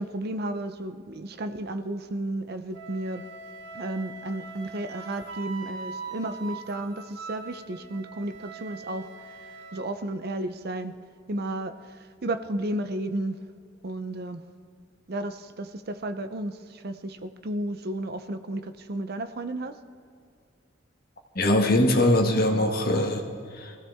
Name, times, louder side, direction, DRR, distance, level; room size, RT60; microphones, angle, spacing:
voice 1, 0.0-3.2 3.7-9.4 9.7-10.9 11.3-13.4 13.8-14.4 15.1-19.8, right 1 dB, 55° right, 9 dB, 0.7 m, -33 dB
Wind instrument woodwind instrument, 2.7-9.8, right 4 dB, 70° right, 1.5 m, -42 dB
voice 2, 21.3-23.3 23.5-23.8, left 1 dB, 55° left, 2 dB, 1.6 m, -22 dB
21.0 x 15.5 x 3.6 m, 2.4 s
head